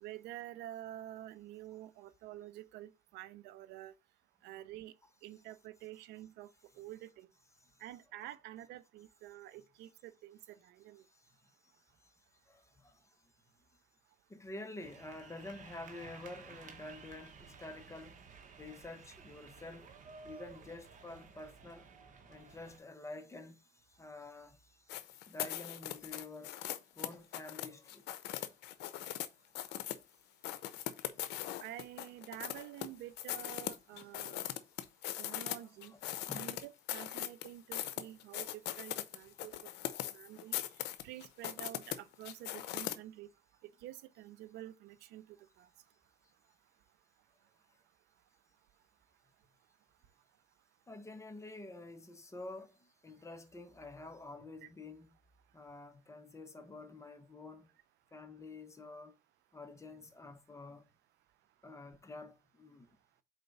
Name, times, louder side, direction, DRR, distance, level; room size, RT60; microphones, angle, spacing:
voice 1, 0.0-3.9 4.4-4.9 5.2-6.5 6.8-7.3 7.8-10.4 10.6-11.0 31.6-34.5 35.1-35.9 36.3-39.5 39.8-40.6 41.0-43.3 43.6-45.7 54.6-54.7, right 13 dB, 85° right, 0.6 m, -49 dB
voice 2, 12.5-13.1 14.3-18.2 18.6-19.9 20.2-21.9 22.3-25.0 25.3-26.6 27.0-28.1 31.2-31.3 35.6-36.0 36.3-36.6 50.9-55.1 55.5-57.7 58.1-59.1 59.5-60.9 61.6-62.9, left 2 dB, 15° left, 1.0 m, -49 dB
sound 1, 14.8-22.8, right 5 dB, 50° right, 1.1 m, -55 dB
sound 2, 24.9-29.3 29.5-30.0 30.4-32.9 33.2-35.6 35.8-42.9, left 13 dB, 85° left, 0.6 m, -40 dB
4.4 x 4.0 x 5.3 m
cardioid pair, 110°, 17 cm